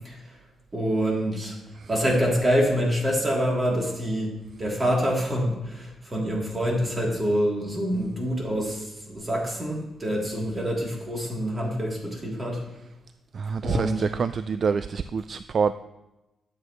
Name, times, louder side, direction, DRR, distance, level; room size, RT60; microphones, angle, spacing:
voice 1, 0.7-1.6 1.9-4.3 4.6-12.6 13.6-14.1, equal, 30° right, -3 dB, 3.2 m, -26 dB
voice 2, 13.3-15.7, right 5 dB, 55° right, 12 dB, 0.3 m, -26 dB
12.0 x 7.9 x 3.2 m, 0.98 s
cardioid pair, 75°, 0 cm